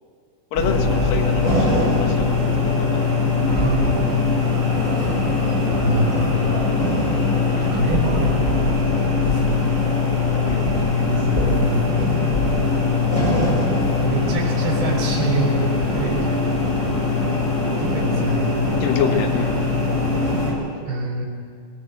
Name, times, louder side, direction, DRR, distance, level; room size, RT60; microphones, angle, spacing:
voice 1, 0.5-3.0 5.0-5.2 7.6-7.7 10.4-10.8 18.8-19.6, left 8 dB, 60° left, 5 dB, 2.7 m, -27 dB
sound 1, 0.5-20.5, left 3 dB, 15° left, 6.6 m, -21 dB
voice 2, 3.4-3.9 5.8-6.5 7.6-8.3 9.3-9.8 10.9-12.0 14.0-16.5 17.8-18.8 19.0-19.4 20.9-21.2, right 3 dB, 55° right, -4 dB, 5.9 m, -26 dB
26.0 x 17.0 x 8.0 m, 2.2 s
omnidirectional pair, 5.3 m